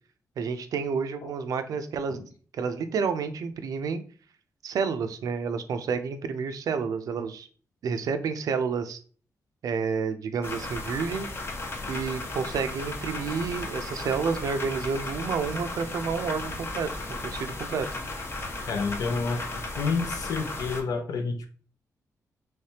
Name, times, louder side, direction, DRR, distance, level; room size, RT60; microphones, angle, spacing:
voice 1, 0.4-2.2 2.5-4.0 4.6-7.5 7.8-9.0 9.6-11.3 11.9-17.9, right 5 dB, 80° right, 10 dB, 0.4 m, -30 dB
sound 1, 10.4-20.8, left 2 dB, 45° left, 0.7 m, -35 dB
voice 2, 18.7-19.5 19.7-21.5, left 4 dB, 80° left, 6 dB, 0.6 m, -29 dB
3.3 x 3.1 x 2.8 m, 0.41 s
wide cardioid pair, 110°, 6 cm